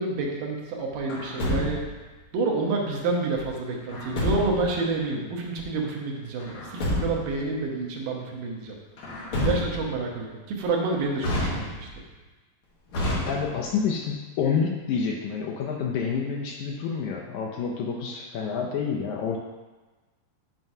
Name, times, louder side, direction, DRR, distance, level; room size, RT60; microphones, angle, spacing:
voice 1, 0.0-1.8 2.3-8.8 9.4-11.9, right 3 dB, 85° right, -1 dB, 2.6 m, -28 dB
Truck, 1.1-2.1 3.9-4.7 6.4-7.4 9.0-10.0 11.2-12.0 12.9-13.8, left 1 dB, 55° left, 1.6 m, -29 dB
voice 2, 13.3-19.4, left 6 dB, 80° left, 0 dB, 1.8 m, -28 dB
7.3 x 5.8 x 2.7 m, 1.2 s
omnidirectional pair, 3.8 m